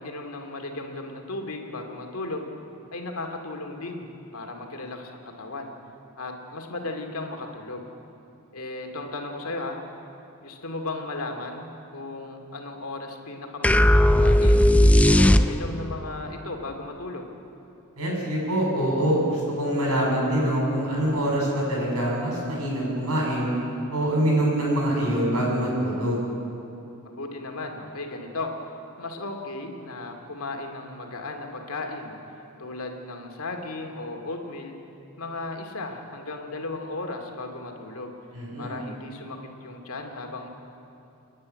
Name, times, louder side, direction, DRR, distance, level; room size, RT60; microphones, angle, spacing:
voice 1, 0.0-2.5 2.9-5.7 6.2-7.9 8.5-9.8 10.4-11.7 11.9-14.6 15.0-17.3 27.2-28.5 29.0-32.2 32.6-34.7 35.2-38.1 38.6-40.5, left 2 dB, 70° left, 3 dB, 2.4 m, -35 dB
sound 1, 13.6-15.9, left 1 dB, 5° left, 0.5 m, -16 dB
voice 2, 18.0-23.5 23.9-26.2 38.3-38.8, right 1 dB, 80° right, -3 dB, 7.1 m, -24 dB
29.0 x 10.0 x 9.6 m, 2.8 s
head